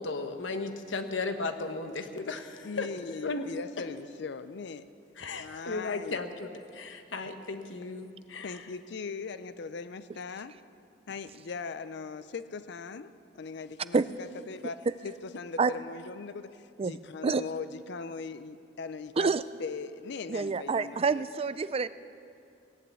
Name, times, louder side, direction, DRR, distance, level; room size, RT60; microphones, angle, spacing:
voice 1, 0.0-2.9 3.2-3.4 5.2-8.7, left 3 dB, 90° left, 7 dB, 1.1 m, -35 dB
voice 2, 2.6-4.8 5.4-6.2 8.4-10.6 11.1-19.3 19.6-21.2, left 4 dB, 65° left, 13 dB, 0.5 m, -40 dB
voice 3, 20.3-21.9, right 4 dB, 30° right, 15 dB, 0.4 m, -27 dB
17.5 x 8.6 x 8.2 m, 2.5 s
head